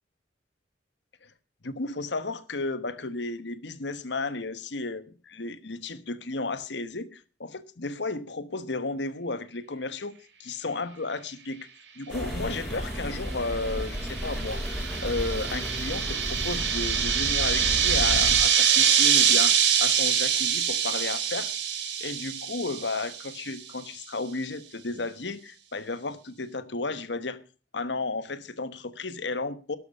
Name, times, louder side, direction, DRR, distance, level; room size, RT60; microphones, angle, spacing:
voice 1, 1.6-11.7 12.0-21.5 22.0-27.4 27.7-29.8, left 3 dB, 70° left, 1.2 m, -33 dB
sound 1, 12.1-18.4, equal, ahead, 7.6 m, -33 dB
sound 2, 13.5-23.3, right 8 dB, 75° right, 2.7 m, -24 dB
12.0 x 12.0 x 5.5 m
head